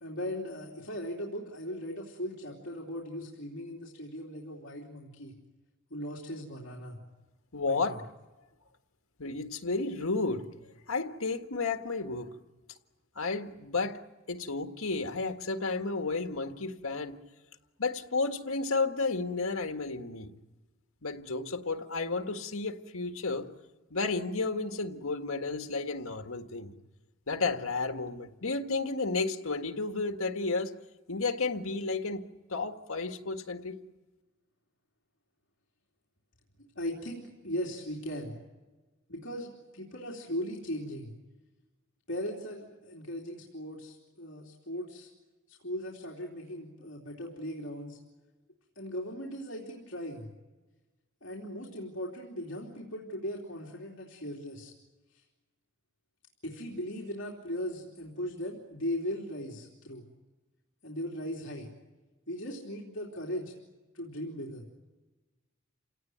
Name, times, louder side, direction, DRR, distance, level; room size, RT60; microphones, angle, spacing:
voice 1, 0.0-5.3 5.9-7.0 7.6-8.0 36.6-38.4 39.1-41.1 42.1-45.1 45.5-48.0 48.7-50.3 51.2-54.7 56.4-60.0 60.8-61.7 62.3-63.5 63.9-64.6, equal, 60° left, -3 dB, 3.3 m, -38 dB
voice 2, 7.5-8.0 9.2-10.5 10.9-12.3 13.2-14.0 14.3-17.2 17.8-20.3 21.0-23.5 23.9-26.7 27.3-30.7 31.1-32.2 32.5-33.8, left 3 dB, 85° left, 6 dB, 1.8 m, -32 dB
28.5 x 18.0 x 9.4 m, 1.2 s
head